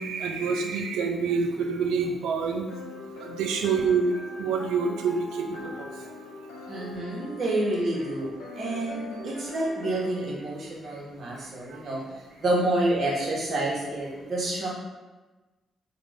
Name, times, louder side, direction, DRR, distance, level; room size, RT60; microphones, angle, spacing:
voice 1, 0.0-2.7 3.2-5.9, right 5 dB, 85° right, 3 dB, 0.3 m, -27 dB
sound 1, 2.7-10.3, left 2 dB, 85° left, 0.7 m, -41 dB
voice 2, 6.7-12.0 12.4-14.7, right 1 dB, 60° right, -4 dB, 0.9 m, -28 dB
2.5 x 2.2 x 3.3 m, 1.2 s
supercardioid pair, 55°, 0 cm